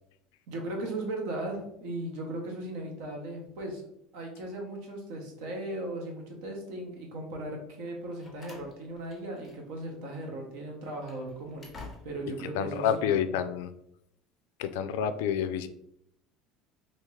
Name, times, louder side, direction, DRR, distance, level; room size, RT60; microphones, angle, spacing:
voice 1, 0.5-3.8 4.1-11.7 12.0-13.2, right 1 dB, 65° right, 1 dB, 0.9 m, -37 dB
Slam, 7.8-9.9 10.1-10.3 10.8-12.4, left 3 dB, 15° left, 0.6 m, -50 dB
voice 2, 12.5-13.7 14.6-15.7, left 8 dB, 85° left, 11 dB, 0.3 m, -28 dB
3.5 x 2.8 x 3.2 m, 0.75 s
cardioid pair, 180°, 0 cm